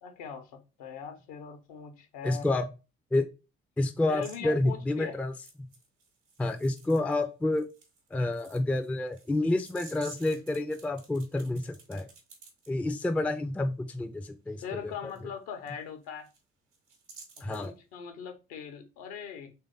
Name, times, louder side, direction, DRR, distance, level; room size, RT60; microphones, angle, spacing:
voice 1, 0.0-2.5 4.1-5.2 14.6-16.3 17.5-19.5, left 7 dB, 65° left, 0.9 m, -41 dB
voice 2, 2.2-2.7 3.1-3.3 3.8-5.3 6.4-7.7 8.1-12.1 12.7-14.6 17.4-17.7, left 2 dB, 5° left, 0.4 m, -29 dB
sound 1, 4.1-4.4 5.3-7.2 7.5-12.7 15.1-15.2 15.7-15.8 16.0-16.4 16.7-17.7, right 4 dB, 85° right, 1.0 m, -52 dB
3.2 x 2.7 x 3.7 m
figure-of-eight pair, 50°, 35 cm